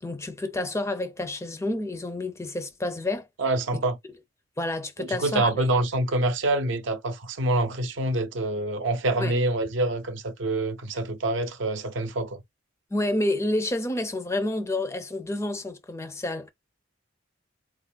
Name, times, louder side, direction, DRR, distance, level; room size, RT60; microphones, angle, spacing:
voice 1, 0.0-3.3 4.6-5.7 9.2-9.3 12.9-16.5, left 1 dB, 15° left, 0.5 m, -29 dB
voice 2, 3.4-4.0 5.0-12.4, right 2 dB, 70° right, 0.6 m, -26 dB
4.0 x 2.4 x 2.3 m
head